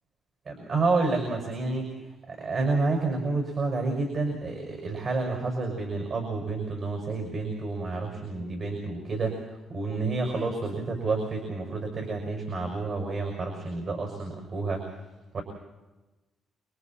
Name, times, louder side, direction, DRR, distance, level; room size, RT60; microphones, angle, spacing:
voice 1, 0.5-1.9 2.3-9.4 9.7-14.8 15.3-15.4, right 3 dB, 50° right, 3 dB, 6.2 m, -29 dB
29.0 x 23.5 x 4.5 m, 1.1 s
cardioid pair, 90°, 0 cm